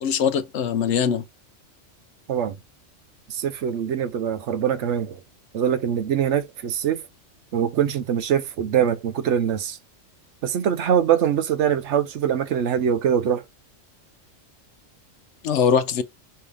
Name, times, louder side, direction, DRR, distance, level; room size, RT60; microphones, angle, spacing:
voice 1, 0.0-1.2 15.4-16.0, left 7 dB, 70° left, 0.9 m, -21 dB
voice 2, 3.3-5.2 5.5-7.1 7.5-9.8 10.4-13.4, right 9 dB, 70° right, 1.0 m, -23 dB
5.5 x 2.7 x 3.3 m
omnidirectional pair, 1.3 m